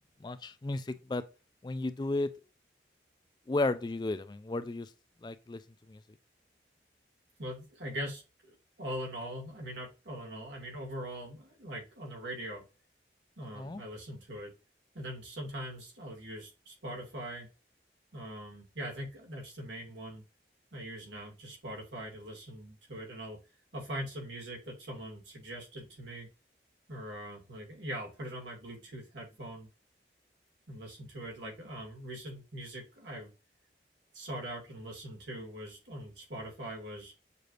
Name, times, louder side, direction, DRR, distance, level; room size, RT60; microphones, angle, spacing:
voice 1, 0.2-1.2 1.6-2.3 3.5-4.9 5.2-5.6 5.9-6.0 13.5-13.8, left 2 dB, 25° left, 0.3 m, -33 dB
voice 2, 7.4-12.6 13.4-14.5 14.9-17.5 18.1-20.2 20.7-23.4 23.7-26.3 26.9-29.7 30.7-33.3 34.1-37.1, equal, 90° right, 2.2 m, -42 dB
6.7 x 3.1 x 2.5 m
head